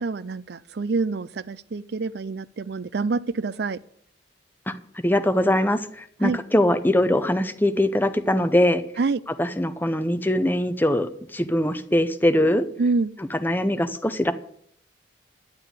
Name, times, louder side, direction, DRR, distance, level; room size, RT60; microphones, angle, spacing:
voice 1, 0.0-3.8 6.2-6.4 9.0-9.2 12.8-13.1, right 4 dB, 60° right, 19 dB, 0.5 m, -26 dB
voice 2, 5.0-8.8 9.4-12.6 13.3-14.3, left 1 dB, 10° left, 10 dB, 0.8 m, -22 dB
11.0 x 8.7 x 8.2 m, 0.65 s
head